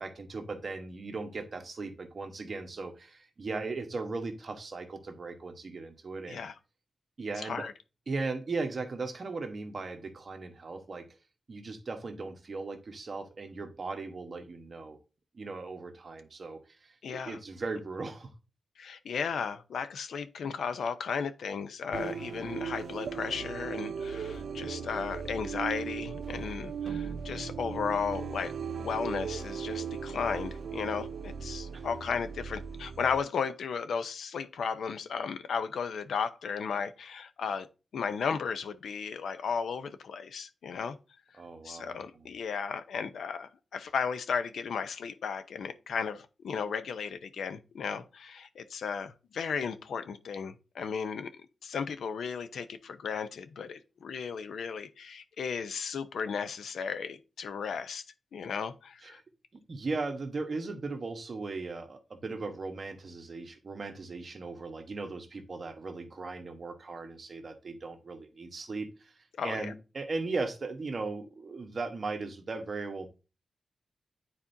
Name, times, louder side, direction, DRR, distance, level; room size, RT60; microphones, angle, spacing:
voice 1, 0.0-6.5 7.2-7.7 8.1-11.1 11.5-15.0 15.3-18.3 31.7-31.8 41.3-42.3 59.0-59.2 59.7-69.2 69.4-73.1, right 3 dB, 40° right, 1.1 m, -38 dB
voice 2, 17.0-17.4 18.8-37.7 37.9-41.0 41.6-51.3 51.6-58.0 58.3-59.2 69.4-69.7, left 6 dB, 90° left, 0.7 m, -35 dB
sound 1, 21.9-33.2, right 6 dB, 65° right, 0.6 m, -37 dB
9.6 x 4.3 x 2.7 m
wide cardioid pair, 165°, 0 cm